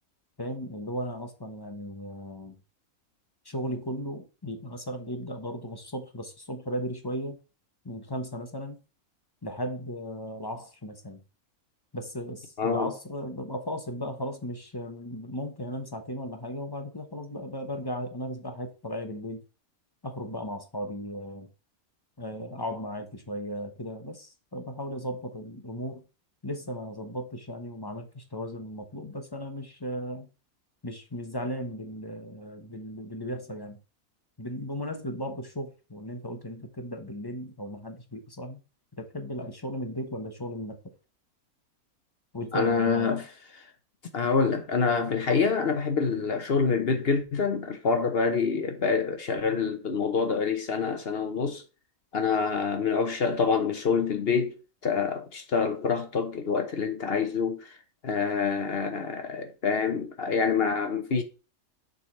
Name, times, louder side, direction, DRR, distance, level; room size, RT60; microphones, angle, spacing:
voice 1, 0.4-2.6 3.4-7.4 7.8-8.8 9.4-11.2 11.9-19.4 20.0-21.5 22.2-26.0 26.4-30.3 30.8-33.8 34.4-38.6 39.0-40.8 42.3-43.2, equal, 20° left, 0.8 m, -36 dB
voice 2, 12.6-12.9 42.5-43.3 43.5-43.7 44.1-51.6 52.1-57.8 58.0-61.2, left 5 dB, 50° left, 0.9 m, -26 dB
6.7 x 4.0 x 4.3 m
omnidirectional pair, 1.5 m